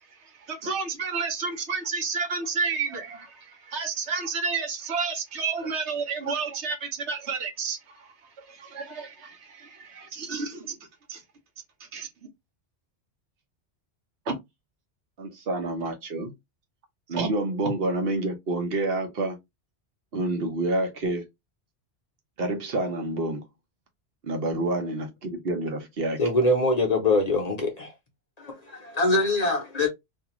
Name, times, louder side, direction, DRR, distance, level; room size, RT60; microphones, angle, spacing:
voice 1, 0.2-8.1 8.4-10.8 11.1-11.2 11.8-12.1 14.3-14.4 17.2-17.3, right 5 dB, 85° right, 1.1 m, -31 dB
voice 2, 15.2-16.3 17.1-19.4 20.1-21.2 22.4-23.4 24.2-26.2, right 2 dB, 60° right, 1.0 m, -28 dB
voice 3, 26.2-27.9 28.4-29.9, left 2 dB, 45° left, 0.7 m, -23 dB
2.6 x 2.4 x 2.9 m
omnidirectional pair, 1.1 m